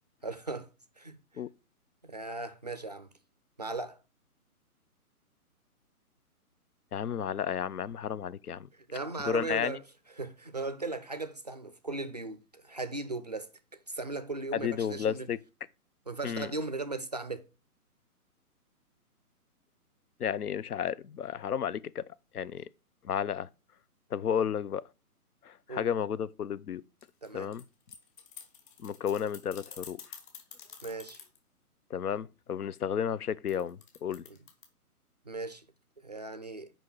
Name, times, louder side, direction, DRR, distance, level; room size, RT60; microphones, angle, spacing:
voice 1, 0.2-0.7 1.0-1.2 2.0-3.1 3.6-4.0 8.7-9.8 10.2-15.3 16.1-17.5 25.7-25.9 27.2-27.5 30.8-31.2 34.3-34.4 35.2-35.6 36.0-36.7, right 3 dB, 30° right, 0.4 m, -37 dB
voice 2, 6.9-8.7 9.2-9.8 14.5-15.4 16.2-16.5 20.2-22.0 22.3-22.7 23.0-23.5 24.1-24.8 25.4-26.8 27.3-27.6 28.8-30.0 31.9-34.2, left 8 dB, 75° left, 0.7 m, -32 dB
sound 1, 27.0-31.4 33.5-34.6, left 7 dB, 35° left, 1.7 m, -48 dB
6.2 x 5.2 x 6.1 m
figure-of-eight pair, 140°, 45 cm